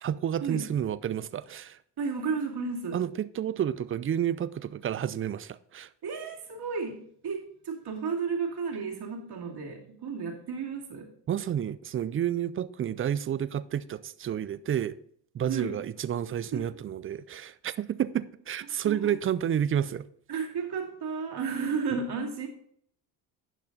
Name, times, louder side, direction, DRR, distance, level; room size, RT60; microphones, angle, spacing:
voice 1, 0.0-1.8 2.9-5.9 11.3-15.0 15.3-20.0, right 9 dB, 30° right, 0.4 m, -30 dB
voice 2, 2.0-3.0 6.0-11.1 15.5-15.7 16.5-16.6 18.8-19.1 20.3-22.5, right 5 dB, 50° right, 2.4 m, -33 dB
10.5 x 5.5 x 4.0 m
supercardioid pair, 75°, 49 cm